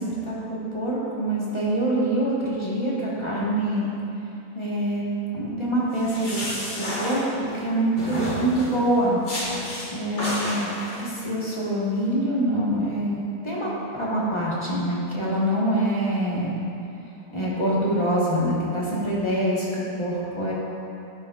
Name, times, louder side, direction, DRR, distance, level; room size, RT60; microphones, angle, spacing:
voice 1, 0.0-3.9 4.5-5.0 5.3-6.4 6.8-9.2 9.9-13.7 14.0-16.5 17.3-19.7 20.0-20.5, right 1 dB, 20° left, -6 dB, 1.1 m, -25 dB
sound 1, 5.9-7.6 8.0-8.8 9.3-9.9 10.2-11.0, equal, 50° left, 2.1 m, -31 dB
11.5 x 6.3 x 2.4 m, 2.8 s
omnidirectional pair, 1.6 m